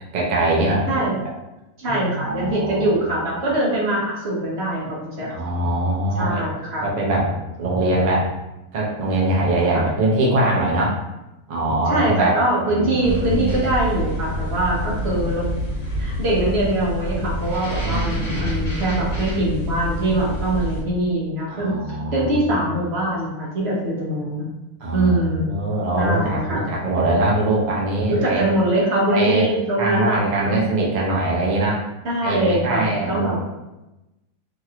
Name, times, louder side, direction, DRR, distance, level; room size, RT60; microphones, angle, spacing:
voice 1, 0.1-1.1 1.9-3.0 5.3-6.5 6.8-7.3 7.6-8.3 8.7-11.0 11.5-12.3 12.7-13.6 17.8-18.5 21.5-22.3 22.7-22.8 24.8-28.5 29.1-29.5 29.8-31.8 32.2-33.4, right 2 dB, 70° right, -3 dB, 0.4 m, -22 dB
voice 2, 0.9-1.2 1.8-5.3 6.2-6.9 9.7-9.9 11.9-15.5 16.0-24.5 24.9-25.5 26.0-26.7 28.1-30.6 32.0-33.4, right 1 dB, 50° right, -5 dB, 1.0 m, -23 dB
sound 1, 13.0-20.8, equal, 55° left, 1.1 m, -27 dB
3.0 x 2.9 x 2.3 m, 0.99 s
omnidirectional pair, 1.6 m